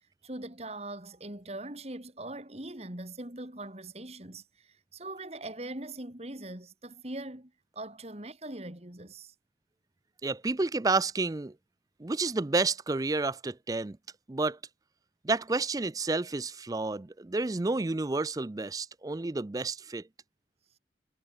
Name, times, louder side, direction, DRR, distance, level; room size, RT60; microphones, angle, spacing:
voice 1, 0.2-9.3, right 2 dB, 35° right, 2.5 m, -41 dB
voice 2, 10.2-11.5 12.0-14.0 14.3-14.6 15.2-20.0, right 3 dB, 20° right, 0.4 m, -30 dB
head